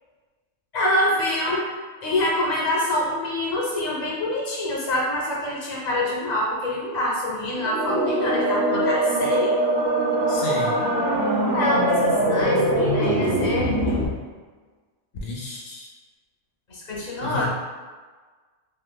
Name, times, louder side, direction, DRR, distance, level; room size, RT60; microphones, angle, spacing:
voice 1, 0.7-1.7 2.0-9.6 11.5-14.0 16.7-17.5, left 1 dB, 40° left, -4 dB, 0.7 m, -25 dB
sound 1, 7.6-14.0, right 1 dB, 50° right, 0.6 m, -22 dB
voice 2, 10.3-10.8 15.2-15.9 17.2-17.5, left 3 dB, 80° left, -5 dB, 0.4 m, -32 dB
3.3 x 2.7 x 2.2 m, 1.4 s
omnidirectional pair, 1.4 m